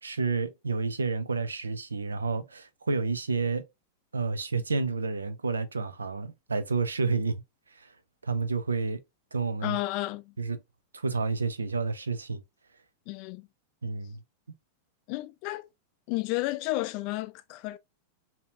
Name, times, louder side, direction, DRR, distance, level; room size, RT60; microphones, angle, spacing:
voice 1, 0.0-3.6 4.1-7.4 7.7-7.9 8.2-9.0 9.3-9.8 10.4-10.6 10.9-12.4 13.8-14.2, right 4 dB, 75° right, 0.5 m, -30 dB
voice 2, 9.6-10.3 13.1-13.5 15.1-15.7 16.1-17.8, left 19 dB, 45° left, 0.3 m, -32 dB
4.0 x 2.8 x 2.7 m
figure-of-eight pair, 90°, 0 cm